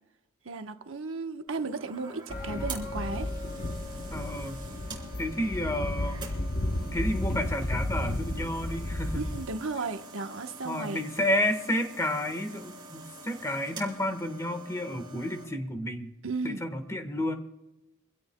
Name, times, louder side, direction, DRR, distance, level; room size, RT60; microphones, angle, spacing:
voice 1, 0.4-3.3 9.1-11.1 16.2-16.6, right 3 dB, 70° right, 1.1 m, -34 dB
sound 1, 1.5-15.4, right 2 dB, 20° right, 3.5 m, -46 dB
sound 2, 2.3-9.5, left 1 dB, 45° left, 0.9 m, -33 dB
voice 2, 4.1-4.6 5.2-6.3 6.8-9.2 10.6-16.1 16.4-17.3, left 1 dB, 15° left, 1.4 m, -31 dB
25.5 x 16.5 x 2.2 m
head